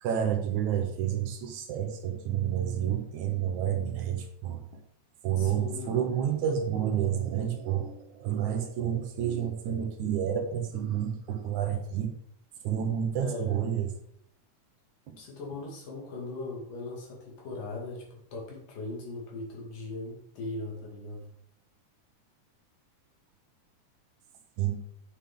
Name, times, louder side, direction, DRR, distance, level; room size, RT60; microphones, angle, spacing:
voice 1, 0.0-4.6 5.2-12.1 12.6-13.9 15.1-15.2 24.6-24.8, right 9 dB, 70° right, 5 dB, 2.3 m, -29 dB
voice 2, 5.4-6.0 13.2-13.6 15.2-21.3, left 2 dB, 80° left, -2 dB, 4.0 m, -39 dB
8.5 x 7.3 x 3.8 m, 0.72 s
omnidirectional pair, 3.7 m